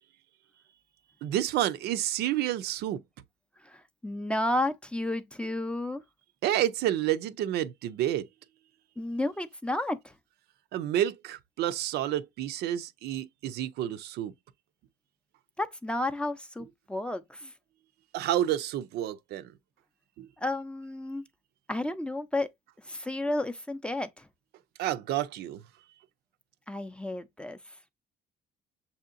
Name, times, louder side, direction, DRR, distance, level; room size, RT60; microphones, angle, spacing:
voice 1, 1.2-3.0 6.4-8.3 10.7-14.3 18.1-19.5 20.2-20.3 24.8-25.6, right 12 dB, 75° right, 0.4 m, -29 dB
voice 2, 3.6-6.0 9.0-10.1 15.6-17.5 20.4-21.2 21.7-22.5 22.8-24.3 26.7-27.7, left 1 dB, 5° left, 0.5 m, -32 dB
6.7 x 2.8 x 2.5 m
cardioid pair, 110°, 17 cm